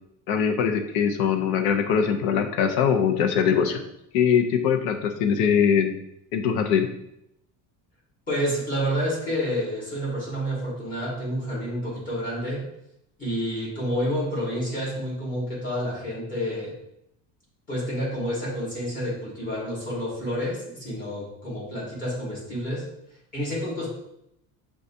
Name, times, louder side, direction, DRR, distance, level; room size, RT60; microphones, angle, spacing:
voice 1, 0.3-3.8 4.1-5.9 6.3-6.9, left 7 dB, 75° left, 5 dB, 0.6 m, -22 dB
voice 2, 8.3-12.7 13.2-16.8 17.7-22.9 23.3-23.9, equal, 20° left, -7 dB, 1.5 m, -29 dB
6.3 x 2.3 x 2.6 m, 0.79 s
cardioid pair, 180°, 37 cm